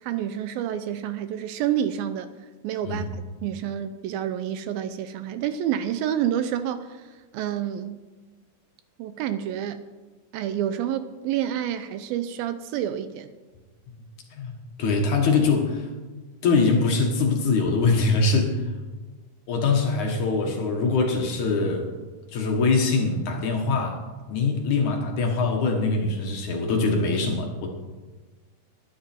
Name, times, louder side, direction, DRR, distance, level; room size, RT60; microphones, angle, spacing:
voice 1, 0.0-2.3 2.6-3.1 3.4-8.0 9.0-9.8 10.3-13.3, right 10 dB, 80° right, 11 dB, 2.3 m, -28 dB
voice 2, 14.8-15.9 16.4-18.6 19.5-21.9 22.3-24.0 24.3-27.7, left 4 dB, 60° left, 2 dB, 2.5 m, -23 dB
20.5 x 10.5 x 4.4 m, 1.3 s
omnidirectional pair, 4.5 m